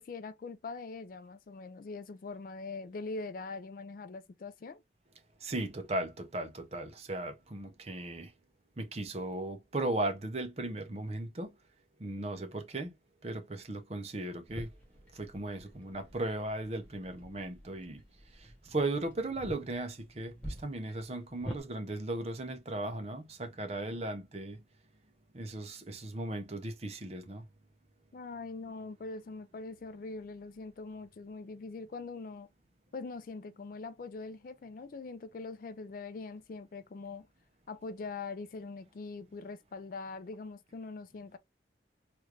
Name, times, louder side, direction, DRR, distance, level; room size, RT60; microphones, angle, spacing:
voice 1, 0.0-4.8 28.1-32.5 32.9-37.3 37.7-41.4, left 3 dB, 50° left, 0.3 m, -42 dB
voice 2, 5.4-8.3 8.8-11.5 12.0-12.9 13.2-14.7 15.1-18.0 18.3-24.6 25.3-27.4, right 2 dB, 35° right, 0.6 m, -37 dB
sound 1, 14.5-21.6, right 1 dB, 10° left, 1.0 m, -48 dB
3.1 x 2.5 x 3.2 m
head